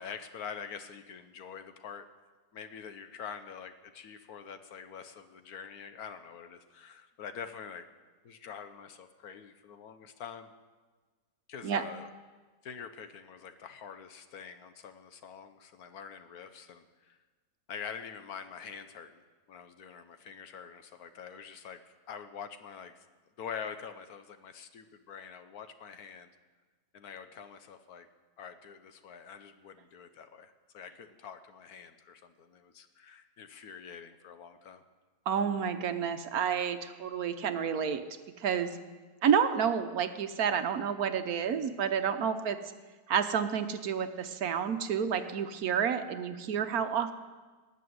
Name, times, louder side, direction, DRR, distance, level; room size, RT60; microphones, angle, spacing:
voice 1, 0.0-2.1 2.5-7.9 8.2-10.5 11.5-12.1 12.6-17.2 17.7-19.2 19.5-23.0 23.4-26.3 26.9-28.1 28.4-34.8, left 7 dB, 65° left, 9 dB, 1.3 m, -45 dB
voice 2, 35.3-38.0 38.4-38.8 39.2-42.6 43.1-47.1, right 7 dB, 65° right, 9 dB, 1.2 m, -30 dB
19.0 x 6.9 x 9.3 m, 1.3 s
omnidirectional pair, 1.8 m